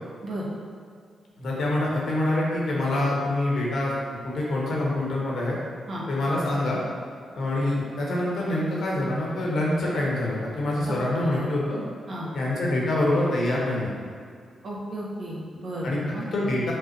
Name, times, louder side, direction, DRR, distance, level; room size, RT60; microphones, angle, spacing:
voice 1, 1.4-3.9 4.2-5.6 6.1-6.8 7.3-11.8 12.3-13.9 15.8-16.0 16.3-16.7, left 1 dB, 70° left, -4 dB, 1.1 m, -25 dB
voice 2, 11.2-11.5 12.1-12.3 14.6-16.2, right 1 dB, 60° right, -4 dB, 1.1 m, -34 dB
5.3 x 2.1 x 4.5 m, 2.2 s
cardioid pair, 65°, 0 cm